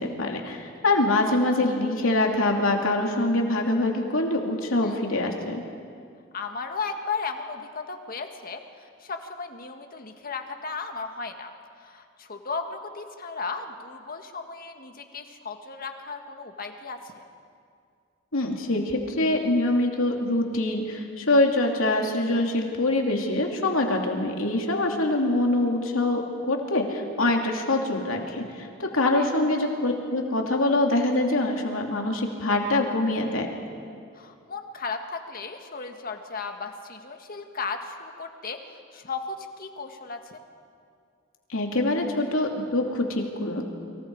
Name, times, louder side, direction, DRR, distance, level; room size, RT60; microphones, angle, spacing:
voice 1, 0.0-5.6 18.3-26.2 26.5-33.5 41.5-43.6, left 2 dB, 80° left, 1 dB, 2.9 m, -24 dB
voice 2, 6.3-11.5 11.8-17.2 29.2-29.3 34.2-38.6 38.9-40.4, left 4 dB, 45° left, 5 dB, 1.8 m, -35 dB
29.5 x 25.0 x 4.8 m, 2.3 s
head